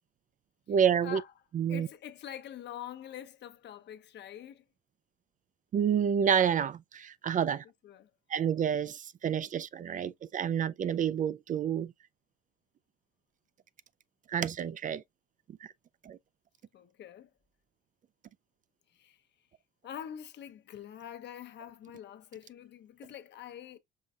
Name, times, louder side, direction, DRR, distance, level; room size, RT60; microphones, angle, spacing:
voice 1, 0.7-1.2 1.5-1.9 5.7-7.6 8.3-11.9 14.3-15.0 16.0-16.2, right 8 dB, 40° right, 0.4 m, -29 dB
voice 2, 1.7-4.6 7.8-8.1 16.7-17.3 18.9-19.2 19.8-23.8, left 10 dB, 60° left, 0.9 m, -45 dB
5.5 x 3.3 x 2.4 m
supercardioid pair, 85°, 21 cm